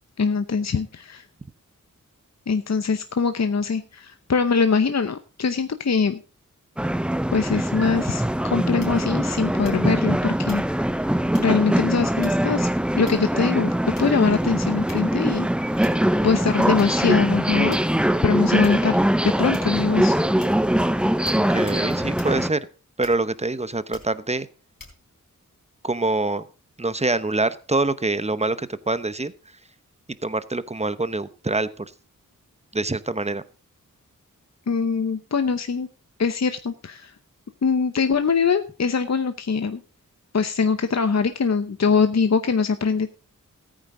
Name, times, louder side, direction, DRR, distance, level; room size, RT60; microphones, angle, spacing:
voice 1, 0.2-1.2 2.5-6.2 7.3-10.6 11.4-12.7 13.0-13.7 14.0-15.5 15.8-15.9 16.2-17.8 18.2-20.1 34.7-35.9 36.2-37.1 37.6-39.8 40.3-43.1, left 5 dB, 55° left, 9 dB, 0.8 m, -22 dB
sound 1, 6.8-22.5, right 1 dB, 5° right, 0.5 m, -22 dB
sound 2, 8.8-9.2 9.6-10.0 10.5-10.7 11.3-11.6 12.2-12.6 13.0-13.5 14.0-14.3 14.9-15.2 15.8-16.1 16.8-16.9 17.7-18.1 18.6-18.9 19.5-19.9 20.4-20.6 21.3-21.4 21.7-21.9 22.2-22.4 23.0-23.4 23.9-24.2 24.8-25.0, left 3 dB, 75° left, 4.0 m, -44 dB
voice 2, 21.5-22.7 23.0-24.5 25.8-26.5 26.8-29.3 30.2-31.9 32.7-33.4, right 2 dB, 20° right, 14 dB, 0.9 m, -25 dB
14.5 x 9.0 x 3.8 m, 0.36 s
cardioid pair, 45°, 33 cm